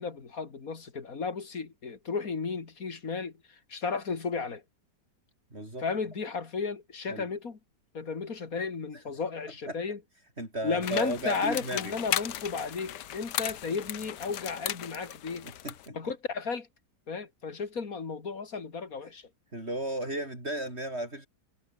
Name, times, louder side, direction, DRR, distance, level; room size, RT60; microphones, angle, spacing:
voice 1, 0.0-4.6 5.8-7.6 7.9-10.0 10.6-15.5 15.9-16.7 17.1-19.3, left 5 dB, 50° left, 2.9 m, -34 dB
voice 2, 5.5-5.9 7.1-7.3 9.7-9.8 10.4-11.9 15.4-16.0 19.5-21.3, right 1 dB, 35° right, 7.1 m, -35 dB
sound 1, 10.8-15.9, left 12 dB, 75° left, 1.4 m, -36 dB
omnidirectional pair, 1.9 m